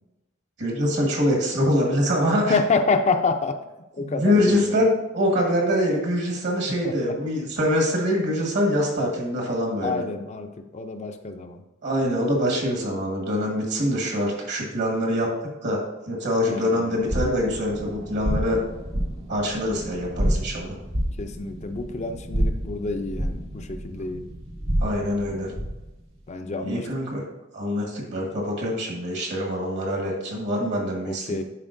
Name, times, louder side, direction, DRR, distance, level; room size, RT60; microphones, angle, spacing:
voice 1, 0.6-2.6 4.0-10.0 11.8-15.3 15.6-15.8 16.1-18.6 19.3-20.8 24.8-25.5 26.6-27.3 27.5-31.4, equal, 60° right, 0 dB, 1.5 m, -24 dB
voice 2, 2.5-3.6 4.0-4.8 6.8-7.2 9.0-9.1 9.8-11.6 16.5-17.1 21.2-24.2 26.3-26.9 31.1-31.4, left 4 dB, 35° left, 7 dB, 0.5 m, -27 dB
sound 1, 17.0-25.9, equal, 85° right, 1.6 m, -29 dB
10.5 x 4.4 x 2.6 m, 1.0 s
head